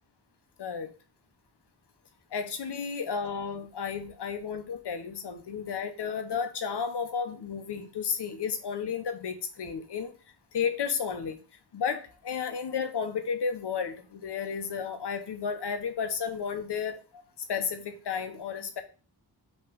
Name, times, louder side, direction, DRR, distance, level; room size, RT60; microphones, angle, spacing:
voice 1, 0.6-0.9 2.3-10.1 10.5-11.4 11.7-17.2 17.5-18.8, left 6 dB, 85° left, 7 dB, 1.0 m, -32 dB
5.8 x 3.3 x 5.0 m, 0.36 s
wide cardioid pair, 105°, 40 cm